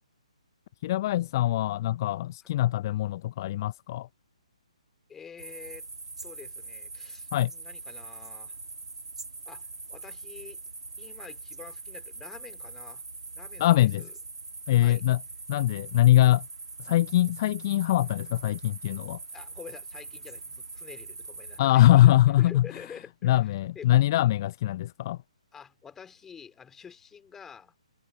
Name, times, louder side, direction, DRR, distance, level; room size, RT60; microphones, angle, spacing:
voice 1, 0.8-4.1 7.3-7.5 13.6-14.0 14.7-15.2 15.5-16.5 16.8-19.2 21.6-22.7 23.2-25.2, left 14 dB, 35° left, 0.7 m, -22 dB
voice 2, 5.1-5.9 6.2-8.6 9.5-10.6 11.0-13.0 13.4-14.1 14.7-15.1 19.3-23.9 25.5-27.7, left 7 dB, 10° left, 3.6 m, -48 dB
sound 1, 5.4-21.6, right 3 dB, 70° right, 3.0 m, -42 dB
figure-of-eight pair, 135°, 4 cm